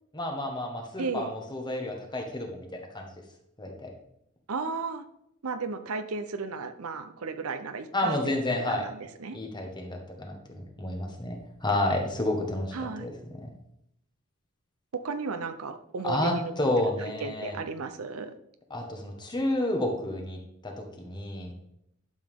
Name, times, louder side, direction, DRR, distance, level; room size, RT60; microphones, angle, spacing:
voice 1, 0.1-3.1 3.6-3.9 7.9-8.9 9.3-13.1 13.4-13.5 16.0-17.6 18.7-21.5, left 1 dB, 20° left, 2 dB, 1.4 m, -30 dB
voice 2, 1.0-1.3 4.5-5.1 5.4-8.2 8.5-9.4 12.7-13.1 15.0-16.5 17.2-18.3, right 4 dB, 85° right, 9 dB, 0.7 m, -34 dB
11.5 x 7.2 x 3.7 m, 0.78 s
head